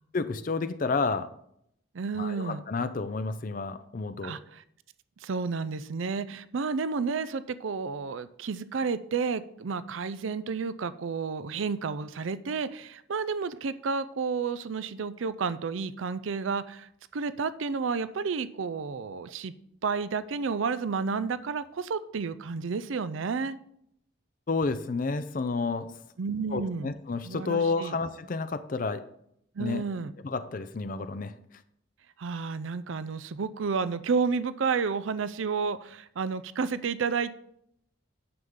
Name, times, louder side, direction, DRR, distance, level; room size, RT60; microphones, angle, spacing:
voice 1, 0.1-1.3 2.1-4.4 24.5-25.9 26.5-29.0 29.6-29.8 30.2-31.3, left 4 dB, 45° left, 11 dB, 0.5 m, -30 dB
voice 2, 1.9-2.6 4.2-4.6 5.2-19.5 19.8-23.6 26.2-26.9 27.2-28.0 29.6-30.1 32.2-37.3, right 5 dB, 75° right, 15 dB, 0.5 m, -31 dB
9.5 x 7.0 x 3.7 m, 0.72 s
head